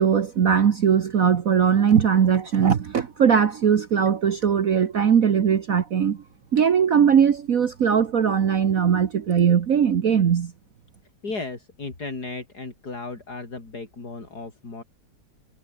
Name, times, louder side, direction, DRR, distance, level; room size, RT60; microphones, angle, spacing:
voice 1, 0.0-6.2 6.5-10.5, right 7 dB, 55° right, 1.5 m, -20 dB
voice 2, 11.2-14.8, left 3 dB, 60° left, 4.8 m, -35 dB
omnidirectional pair, 1.9 m